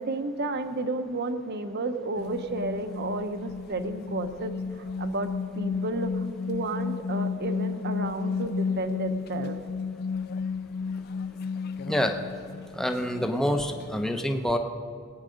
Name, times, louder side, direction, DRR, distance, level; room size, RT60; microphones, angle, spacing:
voice 1, 0.0-9.6, right 2 dB, 55° right, 8 dB, 0.9 m, -32 dB
sound 1, 2.2-14.0, left 5 dB, 50° left, 0.3 m, -33 dB
voice 2, 12.7-14.6, equal, ahead, 4 dB, 0.7 m, -26 dB
19.0 x 8.9 x 5.2 m, 2.1 s
head